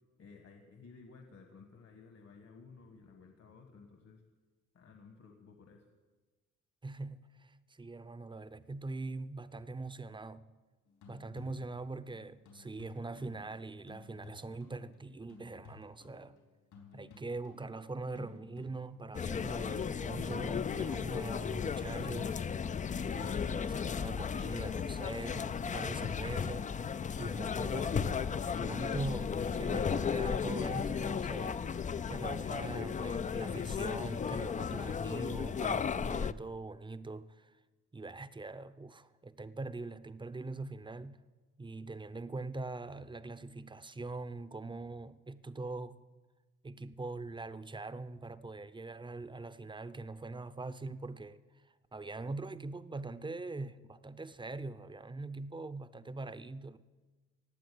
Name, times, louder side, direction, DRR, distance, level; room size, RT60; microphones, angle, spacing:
voice 1, 0.2-4.2 4.7-5.8, left 4 dB, 55° left, 1.6 m, -55 dB
voice 2, 6.8-10.5 11.1-16.4 16.9-22.3 23.0-37.5 37.9-41.2 41.6-46.0 46.6-51.6 51.9-56.8, right 3 dB, 15° right, 0.7 m, -43 dB
sound 1, 10.9-24.2 27.8-27.9, left 5 dB, 80° left, 4.1 m, -57 dB
sound 2, 19.1-36.3, left 6 dB, 25° left, 0.4 m, -35 dB
17.0 x 7.6 x 9.4 m
cardioid pair, 90°, 30 cm